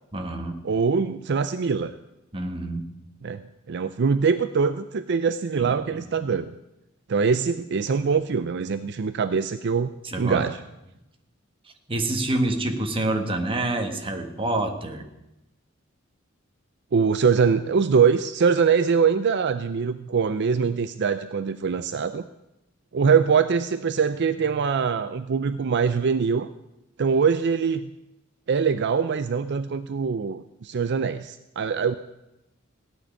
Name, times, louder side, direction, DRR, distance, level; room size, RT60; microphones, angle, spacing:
voice 1, 0.1-0.6 2.3-2.9 5.6-5.7 10.0-10.4 11.9-15.0, right 2 dB, 25° right, 4 dB, 1.6 m, -27 dB
voice 2, 0.6-1.9 3.2-6.5 7.1-9.9 10.2-10.6 16.9-22.2 22.9-26.5 27.0-27.9 28.5-32.0, right 6 dB, 55° right, 11 dB, 0.5 m, -23 dB
16.5 x 6.5 x 10.0 m, 0.94 s
head